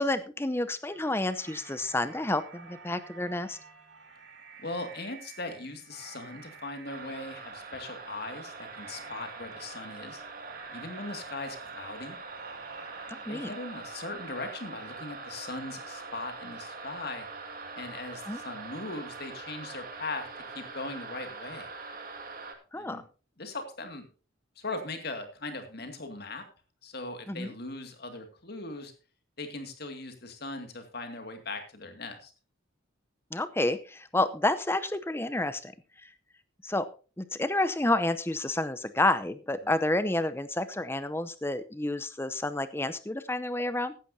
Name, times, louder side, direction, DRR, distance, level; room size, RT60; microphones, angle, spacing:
voice 1, 0.0-3.6 13.1-13.5 18.3-18.4 22.7-23.0 27.3-27.5 33.3-35.7 36.0-36.1 36.6-36.9 37.2-43.9, left 2 dB, 10° left, 13 dB, 0.7 m, -29 dB
sound 1, 0.9-14.3, right 5 dB, 60° right, 3.5 m, -52 dB
voice 2, 4.6-10.2 10.7-12.2 13.1-17.3 17.7-20.2 20.5-21.7 22.7-23.0 23.4-24.1 24.6-26.4 26.8-28.9 29.4-32.3, left 2 dB, 50° left, 6 dB, 2.3 m, -39 dB
sound 2, 6.8-22.5, right 4 dB, 45° right, 2.1 m, -43 dB
15.5 x 11.5 x 2.8 m, 0.35 s
head